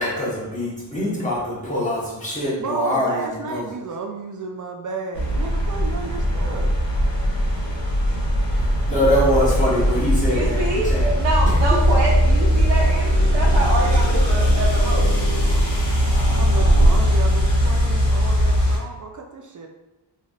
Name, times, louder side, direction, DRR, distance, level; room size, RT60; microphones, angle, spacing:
voice 1, 0.0-3.6 8.5-11.1 11.4-11.8, left 1 dB, 15° left, -8 dB, 1.3 m, -24 dB
voice 2, 2.6-6.7 16.3-19.7, right 4 dB, 45° right, 2 dB, 0.4 m, -32 dB
sound 1, 5.1-18.8, equal, 80° left, 1.2 m, -20 dB
sound 2, 7.8-15.8, left 1 dB, 60° left, 0.7 m, -26 dB
voice 3, 10.3-10.9 11.2-15.2, right 2 dB, 75° right, -7 dB, 0.7 m, -25 dB
3.0 x 2.5 x 2.5 m, 1.0 s
cardioid pair, 75°, 44 cm